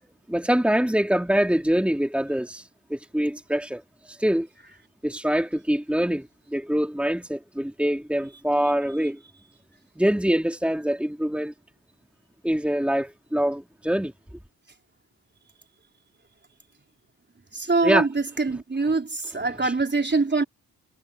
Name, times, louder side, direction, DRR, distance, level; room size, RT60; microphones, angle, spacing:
voice 1, 0.3-3.8 4.1-4.5 5.0-9.2 10.0-11.5 12.4-14.1 17.8-18.1 19.6-19.7, equal, 5° right, 3.0 m, -24 dB
voice 2, 17.5-20.4, right 3 dB, 30° right, 3.9 m, -24 dB
cardioid pair, 60°, 36 cm